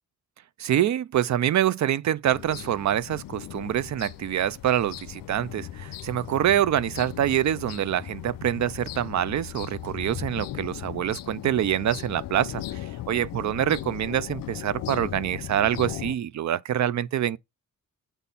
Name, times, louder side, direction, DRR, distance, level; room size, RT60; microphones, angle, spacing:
voice 1, 0.6-17.4, right 11 dB, 55° right, 0.5 m, -26 dB
sound 1, 2.3-16.1, left 13 dB, 80° left, 0.6 m, -38 dB
8.0 x 4.2 x 5.5 m
wide cardioid pair, 140°, 34 cm